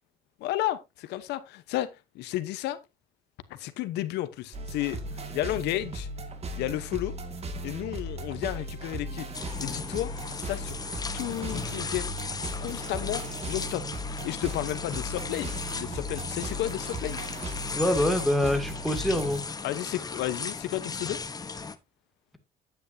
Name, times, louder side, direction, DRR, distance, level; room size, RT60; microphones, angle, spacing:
voice 1, 0.4-1.9 2.1-2.8 3.5-5.0 5.3-6.1 6.6-7.1 7.6-10.8 11.1-12.3 12.6-13.8 14.2-17.2 19.6-21.2, left 14 dB, 85° left, 1.0 m, -32 dB
sound 1, 4.5-19.4, right 1 dB, 40° right, 2.1 m, -37 dB
sound 2, 9.3-21.8, left 4 dB, 20° left, 1.0 m, -37 dB
voice 2, 17.7-19.4, left 1 dB, ahead, 2.3 m, -25 dB
9.9 x 9.2 x 2.7 m
cardioid pair, 110°, 17 cm